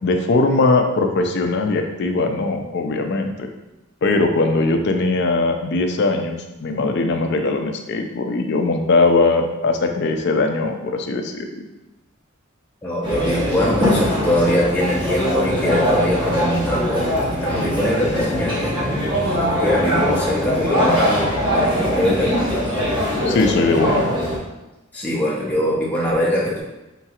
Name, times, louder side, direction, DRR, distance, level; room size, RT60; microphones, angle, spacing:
voice 1, 0.0-3.5 4.0-11.7 23.3-24.1, left 3 dB, 55° left, 5 dB, 0.4 m, -20 dB
voice 2, 12.8-18.8 19.2-22.4 24.9-26.6, equal, 10° left, -6 dB, 0.5 m, -22 dB
sound 1, 13.0-24.4, equal, 25° right, 1.0 m, -21 dB
4.2 x 3.8 x 2.4 m, 1.0 s
head